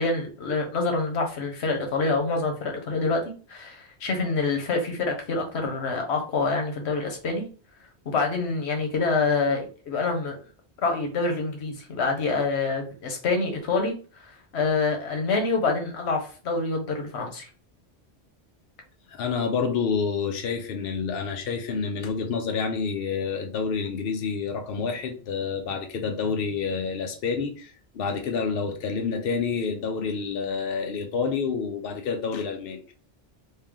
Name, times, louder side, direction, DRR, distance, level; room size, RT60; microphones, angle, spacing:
voice 1, 0.0-7.5 8.0-10.4 10.8-17.5, left 3 dB, 90° left, 3 dB, 1.1 m, -26 dB
voice 2, 19.1-32.9, left 5 dB, 65° left, 3 dB, 0.8 m, -28 dB
3.2 x 2.7 x 3.6 m, 0.39 s
omnidirectional pair, 1.1 m